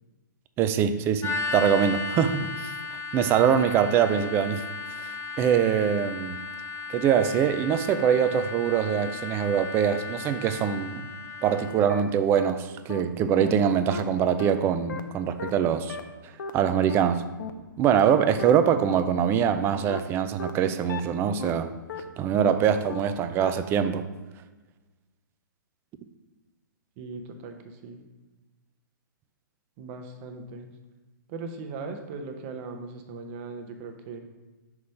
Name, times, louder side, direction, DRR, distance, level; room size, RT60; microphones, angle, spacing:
voice 1, 0.6-2.7 3.1-4.6 5.0-6.4 6.9-11.1 11.4-16.0 16.5-17.2 17.8-21.7 22.2-24.0, right 8 dB, 20° right, 11 dB, 0.3 m, -23 dB
sound 1, 1.2-11.8, left 4 dB, 25° left, 1.2 m, -35 dB
sound 2, 11.5-11.6 11.9-12.0 12.4-12.5 12.9-13.0 13.4-13.5 13.9-14.0 14.4-14.5 14.9-15.0 15.4-15.5 15.9-16.0 16.4-16.5 16.9-17.0 17.4-17.5 17.9-18.0 18.4-18.5 18.9-19.0 19.4-19.5 19.9-20.0 20.4-20.5 20.9-21.0 21.4-21.5 21.9-22.0 22.4-22.5 22.9-23.0 23.4-23.5, left 5 dB, 65° left, 0.6 m, -34 dB
voice 2, 27.0-28.0 29.8-30.7 31.3-34.2, right 4 dB, 35° right, 5 dB, 0.8 m, -39 dB
5.9 x 3.2 x 5.4 m, 1.2 s
figure-of-eight pair, 125°, 11 cm